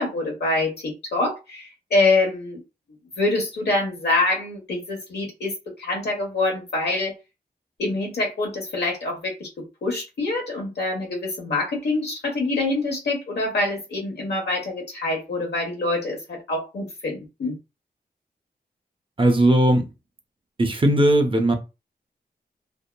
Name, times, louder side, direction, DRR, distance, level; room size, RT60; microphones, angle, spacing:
voice 1, 0.0-2.6 3.2-5.5 5.8-7.1 7.8-9.5 9.8-17.6, left 2 dB, 85° left, 1 dB, 1.0 m, -25 dB
voice 2, 19.2-19.9 20.6-21.5, right 1 dB, 30° right, 4 dB, 0.6 m, -18 dB
2.7 x 2.3 x 2.2 m, 0.27 s
cardioid pair, 65°, 17 cm